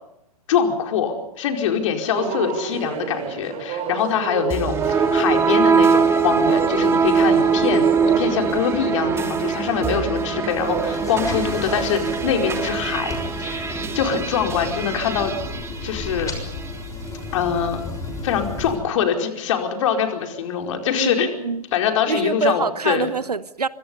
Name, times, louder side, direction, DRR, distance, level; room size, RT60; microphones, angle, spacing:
voice 1, 0.5-15.3 15.8-16.3 17.3-17.8 18.2-21.3 21.7-23.1, left 7 dB, 55° left, 4.8 m, -24 dB
sound 1, 2.1-12.5 13.0-13.3 13.9-14.2 14.6-14.8, right 7 dB, 30° right, 4.8 m, -31 dB
sound 2, 4.5-16.8, right 6 dB, 15° right, 2.6 m, -22 dB
sound 3, 10.6-18.8, left 3 dB, 15° left, 6.4 m, -33 dB
voice 2, 20.9-21.6 22.1-23.7, right 4 dB, 85° right, 1.1 m, -25 dB
26.5 x 25.0 x 5.5 m
figure-of-eight pair, 110°, 20 cm